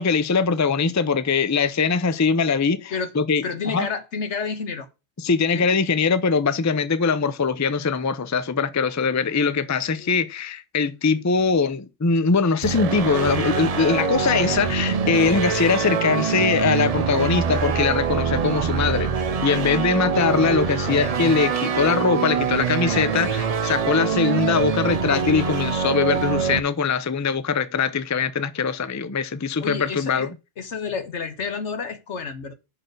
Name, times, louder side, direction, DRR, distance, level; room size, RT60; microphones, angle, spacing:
voice 1, 0.0-3.9 5.2-19.1 19.4-30.3, left 5 dB, 20° left, 0.4 m, -22 dB
voice 2, 3.4-4.9 5.5-5.7 10.0-10.2 29.6-30.3 30.6-32.5, left 5 dB, 80° left, 1.5 m, -30 dB
sound 1, 12.6-26.6, right 6 dB, 45° right, 0.6 m, -24 dB
6.5 x 6.0 x 6.6 m
omnidirectional pair, 1.2 m